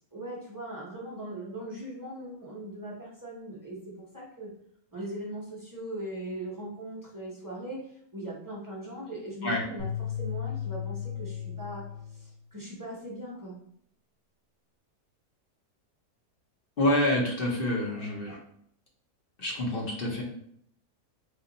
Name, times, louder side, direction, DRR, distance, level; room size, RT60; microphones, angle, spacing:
voice 1, 0.1-4.5 4.9-9.9 10.2-11.8 12.1-13.6, right 1 dB, 20° right, -6 dB, 0.5 m, -40 dB
sound 1, 9.8-12.3, left 9 dB, 50° right, 0.9 m, -35 dB
voice 2, 16.8-18.4 19.4-20.2, left 1 dB, 50° left, -1 dB, 0.7 m, -27 dB
3.5 x 2.4 x 3.9 m, 0.69 s
omnidirectional pair, 1.7 m